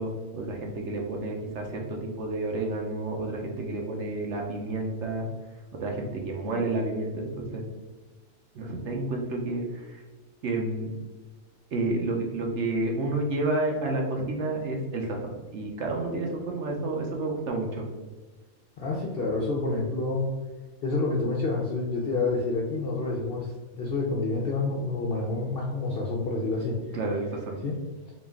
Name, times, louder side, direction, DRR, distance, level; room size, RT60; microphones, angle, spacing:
voice 1, 0.0-5.3 5.7-7.6 8.5-10.0 10.4-10.9 11.7-17.8 26.9-27.6, right 2 dB, 60° right, 0 dB, 0.9 m, -30 dB
voice 2, 18.8-20.4 20.8-26.8 27.6-27.8, left 3 dB, 60° left, -2 dB, 0.6 m, -28 dB
3.9 x 2.4 x 3.5 m, 1.2 s
omnidirectional pair, 1.5 m